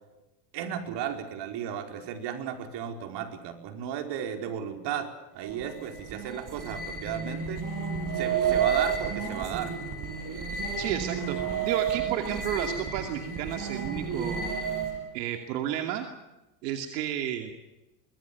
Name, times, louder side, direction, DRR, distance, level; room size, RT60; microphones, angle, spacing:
voice 1, 0.5-7.6 8.1-9.9, right 9 dB, 55° right, 5 dB, 4.8 m, -34 dB
sound 1, 5.4-15.1, right 6 dB, 40° right, 6.8 m, -31 dB
voice 2, 10.8-11.4 11.6-14.5 15.1-16.1 16.6-17.5, right 10 dB, 80° right, 5 dB, 2.7 m, -32 dB
25.0 x 21.0 x 7.1 m, 0.99 s
supercardioid pair, 105°, 49 cm